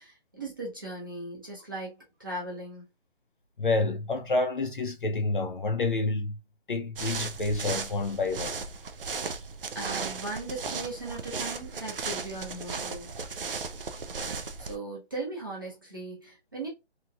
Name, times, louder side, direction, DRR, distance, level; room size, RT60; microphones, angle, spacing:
voice 1, 0.0-2.8 9.7-13.1 14.6-16.7, right 2 dB, 20° right, 0.7 m, -38 dB
voice 2, 3.6-6.4 6.7-8.5, left 3 dB, 50° left, 0.6 m, -28 dB
sound 1, 7.0-14.8, right 4 dB, 55° right, 0.5 m, -36 dB
3.0 x 2.8 x 2.3 m
hypercardioid pair, 175°, 33 cm